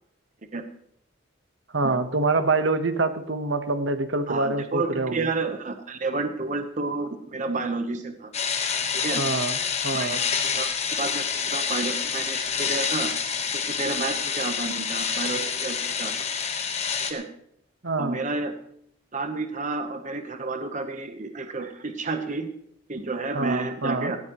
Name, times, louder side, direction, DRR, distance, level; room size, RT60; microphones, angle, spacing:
voice 1, 1.7-5.3 9.1-9.6 9.8-10.2 17.8-18.2 23.3-24.1, right 3 dB, 70° right, 9 dB, 1.0 m, -25 dB
voice 2, 4.3-8.3 8.9-9.2 9.9-10.2 10.6-13.1 13.5-16.3 17.1-17.2 18.0-18.6 19.1-22.5 22.9-24.2, right 3 dB, 40° right, 7 dB, 0.9 m, -30 dB
sound 1, 8.3-17.1, left 6 dB, 35° left, 1.1 m, -27 dB
18.0 x 14.0 x 3.0 m, 0.71 s
head